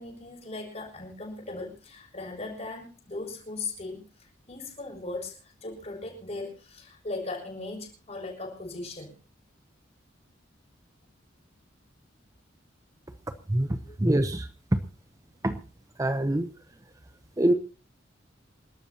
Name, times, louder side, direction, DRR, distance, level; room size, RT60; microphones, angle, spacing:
voice 1, 0.0-9.1 13.9-14.0, left 2 dB, 35° left, 0 dB, 7.2 m, -38 dB
voice 2, 13.5-14.8 15.4-15.6 16.0-16.5 17.4-17.5, right 1 dB, 15° right, 9 dB, 0.7 m, -25 dB
28.5 x 12.5 x 2.9 m, 0.34 s
head